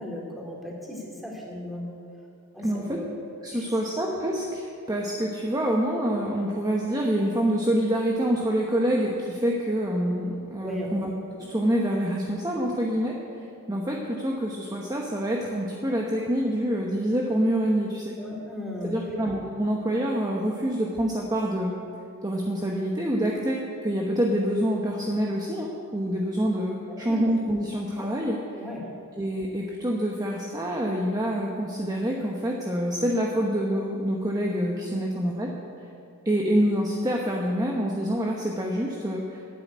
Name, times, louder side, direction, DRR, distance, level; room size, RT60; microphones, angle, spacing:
voice 1, 0.0-1.8 2.5-3.0 3.5-3.7 10.6-11.0 18.2-19.1 27.1-27.2 28.0-28.1 28.6-28.9, left 1 dB, ahead, -3 dB, 2.5 m, -36 dB
voice 2, 2.6-3.0 3.4-11.1 11.4-18.2 18.8-21.7 22.2-28.6 29.2-35.5 36.2-39.4, equal, 15° right, -1 dB, 1.0 m, -26 dB
12.0 x 9.6 x 9.3 m, 2.6 s
head